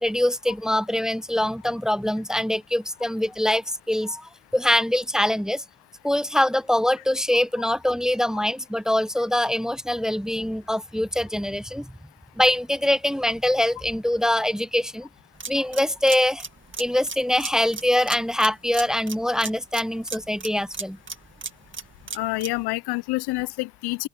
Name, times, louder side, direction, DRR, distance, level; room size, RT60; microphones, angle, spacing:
voice 1, 0.0-5.6 6.0-11.9 12.4-15.1 15.5-16.4 16.8-21.0, left 1 dB, ahead, 0.8 m, -23 dB
sound 1, 15.4-22.6, right 4 dB, 30° right, 2.2 m, -37 dB
voice 2, 22.1-24.1, left 21 dB, 75° left, 0.7 m, -27 dB
open air
hypercardioid pair, 45°, 39 cm